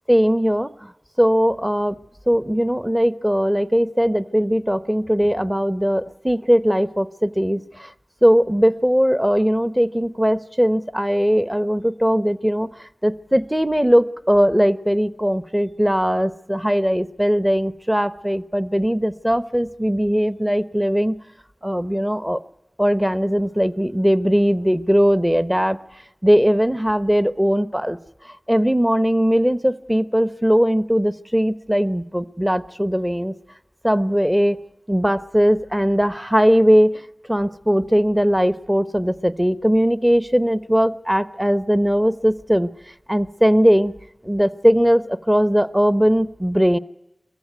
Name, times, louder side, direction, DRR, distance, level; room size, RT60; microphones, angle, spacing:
voice 1, 0.1-0.7 1.2-2.0 2.3-7.9 8.2-12.7 13.0-21.2 21.6-22.4 22.8-25.8 26.2-28.0 28.5-33.3 33.8-34.6 34.9-37.0 37.3-42.7 43.1-43.9 44.2-46.8, equal, 10° right, 13 dB, 0.9 m, -19 dB
22.5 x 15.0 x 9.2 m, 0.91 s
wide cardioid pair, 45°, 0 cm